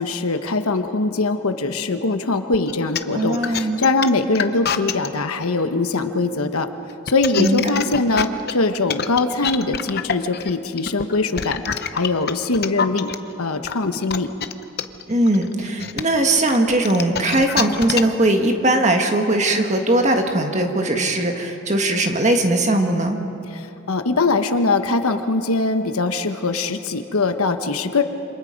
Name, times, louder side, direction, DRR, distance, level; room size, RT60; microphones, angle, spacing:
voice 1, 0.0-6.7 7.1-11.6 11.9-13.1 13.4-14.3 23.5-28.0, left 3 dB, 80° left, 8 dB, 1.1 m, -22 dB
sound 1, 2.5-5.1 6.9-13.1 13.6-18.2, left 7 dB, 45° left, 0.8 m, -26 dB
voice 2, 3.1-3.8 7.4-7.7 15.1-23.2, right 1 dB, 30° right, 4 dB, 1.7 m, -19 dB
27.5 x 26.0 x 5.3 m, 2.8 s
head